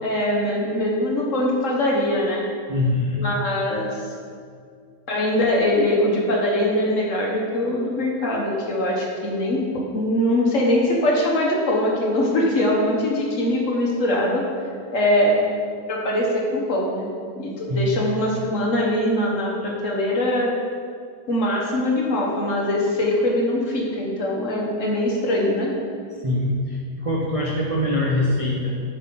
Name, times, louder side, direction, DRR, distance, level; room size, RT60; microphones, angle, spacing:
voice 1, 0.0-2.4 3.2-3.9 5.1-14.4 14.9-15.4 15.9-17.1 17.4-20.5 21.3-25.7, left 1 dB, 50° left, -2 dB, 1.4 m, -22 dB
voice 2, 2.7-3.3 17.7-18.0 26.2-28.7, left 1 dB, 60° right, -4 dB, 0.3 m, -23 dB
7.8 x 5.7 x 3.8 m, 2.1 s
omnidirectional pair, 1.9 m